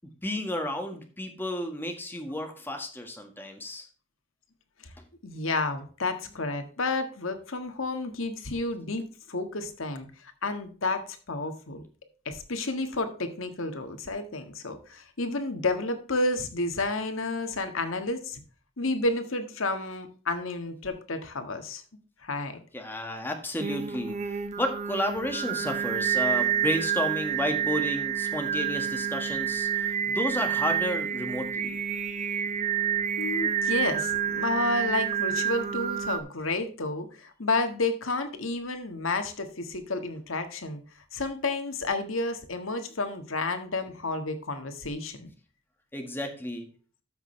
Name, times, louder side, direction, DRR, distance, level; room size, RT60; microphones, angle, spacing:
voice 1, 0.2-3.9 22.7-31.8 45.9-46.7, left 1 dB, 10° left, 4 dB, 1.7 m, -32 dB
voice 2, 5.2-11.8 12.2-18.4 18.8-21.8 22.2-22.6 33.2-40.8 41.1-45.3, left 2 dB, 85° left, 7 dB, 1.6 m, -31 dB
Singing, 23.6-36.2, right 8 dB, 35° right, 0.8 m, -29 dB
13.5 x 6.3 x 3.2 m, 0.38 s
head